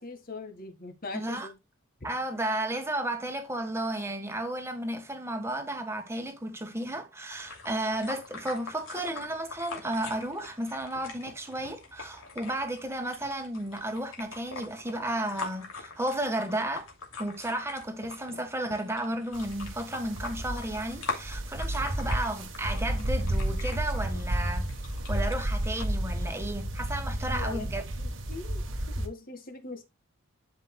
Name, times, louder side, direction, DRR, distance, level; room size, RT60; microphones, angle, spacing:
voice 1, 0.0-1.6 27.3-27.7 28.0-29.8, left 3 dB, 45° left, 1.7 m, -41 dB
voice 2, 1.1-1.5 2.0-16.9 17.2-24.7 25.1-27.8, right 1 dB, 10° right, 1.5 m, -33 dB
sound 1, 7.3-25.9, left 4 dB, 80° left, 2.7 m, -43 dB
sound 2, 19.3-29.1, right 1 dB, 60° right, 1.4 m, -32 dB
11.5 x 5.2 x 2.3 m
head